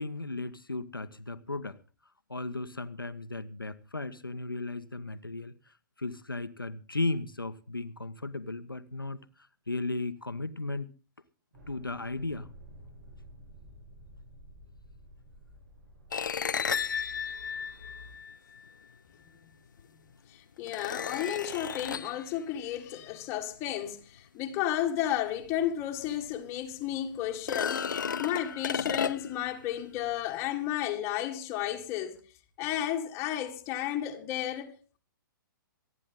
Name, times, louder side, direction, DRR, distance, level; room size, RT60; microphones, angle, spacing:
voice 1, 0.0-1.8 2.3-5.5 6.0-9.2 9.7-10.9 11.7-12.5, left 2 dB, 85° left, 1.2 m, -35 dB
sound 1, 11.5-18.1, equal, 50° right, 5.5 m, -52 dB
sound 2, 16.1-18.6 19.8-19.9 20.7-22.2 25.5-25.6 26.0-26.1 27.3-29.5, left 7 dB, 65° left, 0.6 m, -33 dB
voice 2, 20.3-32.2 32.6-35.0, left 11 dB, 25° left, 1.8 m, -33 dB
27.0 x 9.9 x 3.7 m
figure-of-eight pair, 120°, 11 cm